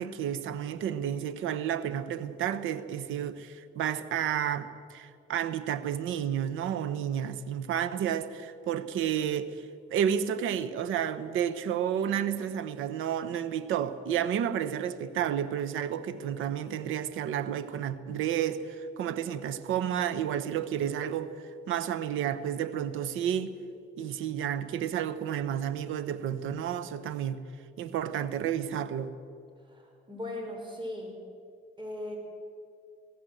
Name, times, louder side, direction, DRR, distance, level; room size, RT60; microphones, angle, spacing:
voice 1, 0.0-9.6 9.9-21.3 21.7-23.6 24.0-27.4 27.8-29.1, right 9 dB, 85° right, 1.1 m, -31 dB
voice 2, 29.6-31.2 31.8-32.2, left 1 dB, 25° right, 5.3 m, -38 dB
20.0 x 17.0 x 7.8 m
cardioid pair, 90°, 20 cm